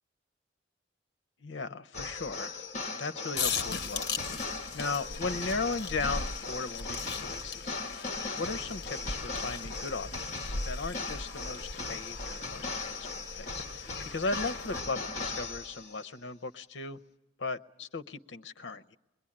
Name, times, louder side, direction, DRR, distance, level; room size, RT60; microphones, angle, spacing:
voice 1, 1.4-2.6 2.9-7.8 8.3-17.0 17.4-19.0, left 3 dB, 80° left, 10 dB, 0.8 m, -37 dB
sound 1, 1.9-16.0, left 4 dB, 40° left, 1.3 m, -38 dB
sound 2, 3.3-14.8, left 4 dB, 60° left, 1.0 m, -39 dB
23.0 x 22.0 x 8.7 m, 1.0 s
head